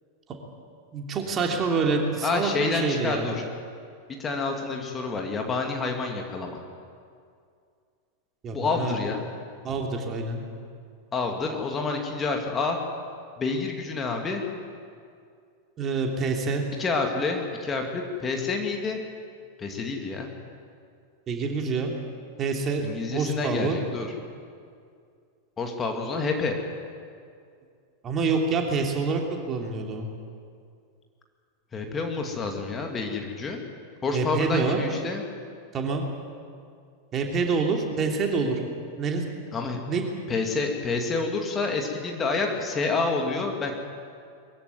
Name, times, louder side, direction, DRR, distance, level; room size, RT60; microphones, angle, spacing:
voice 1, 0.9-3.3 8.4-9.0 9.6-10.4 15.8-16.6 21.3-21.9 22.4-22.8 23.1-23.8 28.0-29.2 29.5-30.1 34.1-34.8 35.7-36.0 37.1-38.6 39.0-39.3 39.9-40.0, right 4 dB, 25° right, 2 dB, 3.1 m, -26 dB
voice 2, 2.2-3.4 4.2-6.6 8.5-9.2 11.1-12.8 13.4-14.4 16.8-19.0 19.6-20.3 22.8-24.1 25.6-26.6 31.7-33.6 34.0-35.2 39.5-39.8 40.3-43.7, left 4 dB, 20° left, 2 dB, 2.6 m, -28 dB
22.0 x 15.5 x 9.6 m, 2.3 s
figure-of-eight pair, 90°, 0 cm